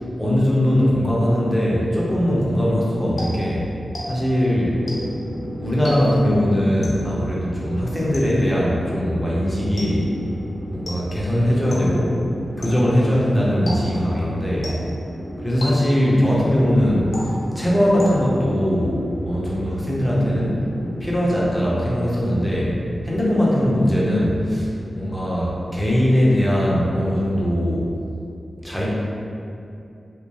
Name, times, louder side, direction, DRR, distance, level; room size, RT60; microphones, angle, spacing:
voice 1, 0.2-3.7 4.1-4.8 5.6-10.1 10.7-12.1 12.6-14.8 15.4-20.6 21.0-22.7 23.0-27.9 28.6-28.9, equal, 10° left, -6 dB, 0.7 m, -20 dB
sound 1, 3.2-4.4 4.9-5.3 5.8-6.3 6.8-7.2 8.1-8.6 9.8-10.2 10.9-11.3 11.7-12.1 12.6-13.0 13.7-14.2 14.6-15.1 15.6-16.2 17.1-17.6 18.0-18.5, equal, 55° left, 0.6 m, -34 dB
sound 2, 4.5-21.1, equal, 60° right, 0.5 m, -34 dB
3.1 x 2.1 x 2.6 m, 2.6 s
cardioid pair, 70°, 0 cm